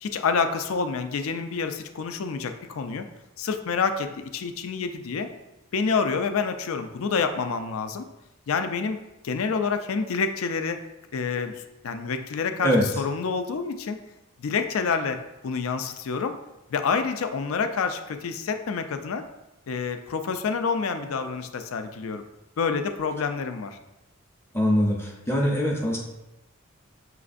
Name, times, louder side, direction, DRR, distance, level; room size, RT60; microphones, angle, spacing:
voice 1, 0.0-3.1 3.4-5.3 5.7-8.1 8.5-10.8 11.1-12.7 13.0-14.0 14.4-16.4 16.7-19.2 19.7-22.2 22.6-23.8, left 5 dB, 70° left, 8 dB, 0.4 m, -28 dB
voice 2, 24.5-26.0, equal, 10° left, -1 dB, 0.5 m, -22 dB
5.8 x 3.2 x 2.5 m, 0.96 s
head